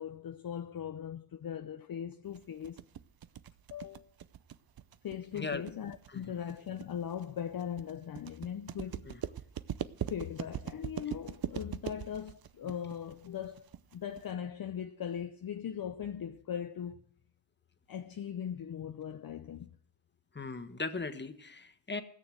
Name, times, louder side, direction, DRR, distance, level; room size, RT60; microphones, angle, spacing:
voice 1, 0.0-2.8 3.7-4.1 5.0-9.1 10.1-17.0 17.9-19.7, left 8 dB, 45° left, 0.8 m, -39 dB
sound 1, 2.3-14.3, right 10 dB, 45° right, 0.8 m, -41 dB
voice 2, 20.3-22.0, left 3 dB, 20° left, 1.5 m, -38 dB
16.0 x 6.9 x 7.8 m
cardioid pair, 65°, 49 cm